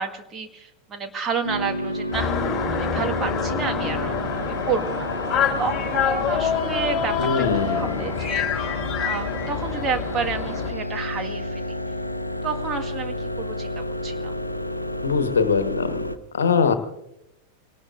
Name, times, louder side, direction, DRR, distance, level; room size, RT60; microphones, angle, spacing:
voice 1, 0.0-2.3 2.7-5.1 5.6-11.8 12.4-14.3, right 5 dB, 25° right, 6 dB, 1.8 m, -30 dB
sound 1, 1.4-16.2, left 1 dB, 85° left, 0.7 m, -30 dB
sound 2, 2.1-10.7, left 7 dB, 20° left, 3.7 m, -27 dB
voice 2, 7.2-8.0 15.0-16.0 16.3-16.7, left 5 dB, 70° left, 10 dB, 1.3 m, -22 dB
26.0 x 18.5 x 2.6 m, 0.85 s
figure-of-eight pair, 90°, 0 cm